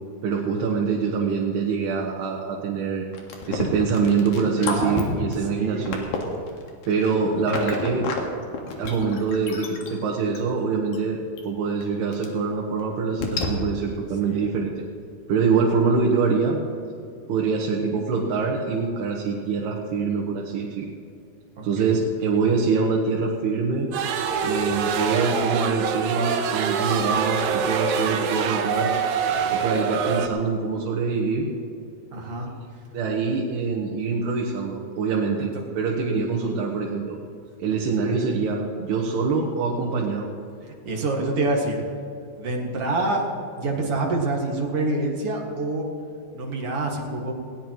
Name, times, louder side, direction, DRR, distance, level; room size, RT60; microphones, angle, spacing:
voice 1, 0.2-3.1 3.5-6.0 6.9-8.1 8.8-14.8 15.3-16.6 17.3-20.9 21.6-23.9 24.4-28.9 29.5-31.5 32.9-37.2 37.6-40.3, right 5 dB, 90° right, -2 dB, 3.4 m, -24 dB
sound 1, 3.1-8.2 8.5-10.4 10.9-11.0 11.4-11.5 11.8-11.9 12.1-12.3 12.8-12.9 13.2-13.5, left 4 dB, 75° left, 3.6 m, -30 dB
voice 2, 4.6-5.0 5.5-5.9 14.3-14.5 15.7-15.9 21.6-22.0 32.1-32.5 35.4-35.5 40.6-41.8 42.4-43.2 43.6-45.9 46.3-47.3, right 2 dB, 45° right, -1 dB, 2.5 m, -27 dB
sound 2, 23.9-30.3, right 6 dB, 70° right, 1.8 m, -25 dB
20.5 x 17.5 x 3.1 m, 2.5 s
omnidirectional pair, 4.5 m